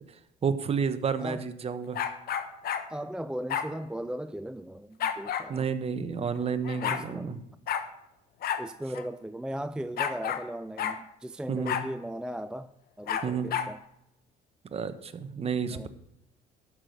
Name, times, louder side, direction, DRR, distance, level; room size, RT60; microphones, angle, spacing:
voice 1, 0.4-2.0 5.5-7.4 11.5-11.7 13.2-13.5 14.7-15.9, right 6 dB, 35° right, 1.1 m, -30 dB
sound 1, 1.9-2.9 3.5-3.7 5.0-5.5 6.4-6.5 6.6-7.0 7.7-7.9 8.4-8.6 8.9-9.0 10.0-10.5 10.8-11.0 11.7-11.9 13.1-13.7, left 8 dB, 65° left, 1.3 m, -30 dB
voice 2, 2.9-5.7 6.8-7.4 8.6-13.8 15.7-15.9, right 1 dB, 5° right, 0.4 m, -37 dB
12.5 x 6.0 x 6.5 m
cardioid pair, 110°, 17 cm